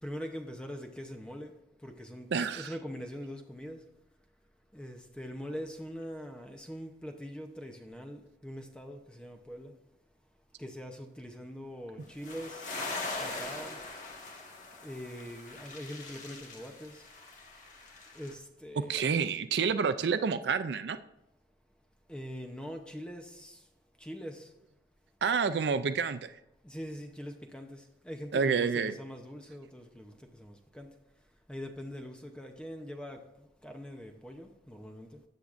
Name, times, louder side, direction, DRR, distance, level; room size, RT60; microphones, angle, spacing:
voice 1, 0.0-3.9 4.7-9.8 10.6-12.8 13.2-13.8 14.7-17.1 18.1-19.1 22.1-23.7 24.0-24.5 26.6-35.2, equal, 5° left, 0.7 m, -43 dB
voice 2, 2.3-2.7 18.9-21.0 25.2-26.3 28.3-28.9, right 6 dB, 70° right, 0.4 m, -28 dB
sound 1, 12.2-18.3, left 3 dB, 45° left, 1.6 m, -41 dB
13.0 x 8.1 x 2.5 m
head